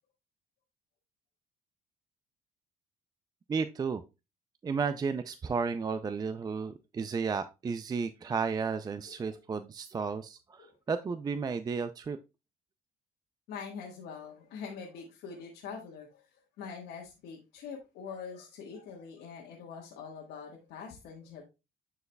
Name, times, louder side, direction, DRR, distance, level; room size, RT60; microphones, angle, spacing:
voice 1, 3.5-4.0 4.6-12.2, right 5 dB, 25° right, 10 dB, 0.4 m, -33 dB
voice 2, 9.0-9.4 10.6-10.7 13.5-21.4, left 6 dB, 85° left, -2 dB, 1.4 m, -44 dB
9.7 x 4.7 x 2.2 m, 0.26 s
cardioid pair, 110°, 17 cm